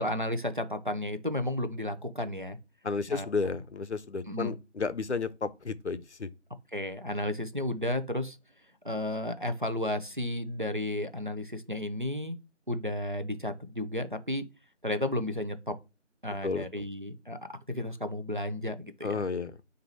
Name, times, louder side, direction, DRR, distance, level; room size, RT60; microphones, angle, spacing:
voice 1, 0.0-2.6 3.1-3.3 4.3-4.6 6.7-8.4 8.8-12.4 12.7-14.4 14.8-15.8 16.2-19.2, left 1 dB, 40° right, 0.6 m, -33 dB
voice 2, 2.8-6.3 16.4-16.8 19.0-19.6, left 4 dB, 65° left, 0.5 m, -32 dB
4.2 x 2.6 x 4.5 m
figure-of-eight pair, 175°, 37 cm